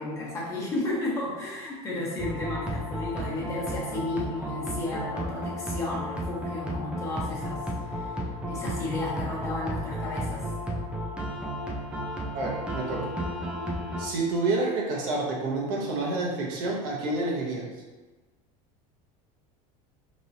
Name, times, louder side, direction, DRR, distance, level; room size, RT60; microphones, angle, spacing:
voice 1, 0.0-7.6 7.9-8.2 8.5-10.4, left 2 dB, 15° left, -6 dB, 1.1 m, -33 dB
sound 1, 2.2-14.1, equal, 5° right, 0.4 m, -33 dB
voice 2, 12.3-13.1 14.0-17.7, right 2 dB, 55° right, -2 dB, 1.0 m, -28 dB
5.2 x 3.1 x 2.7 m, 1.2 s
cardioid pair, 175°, 17 cm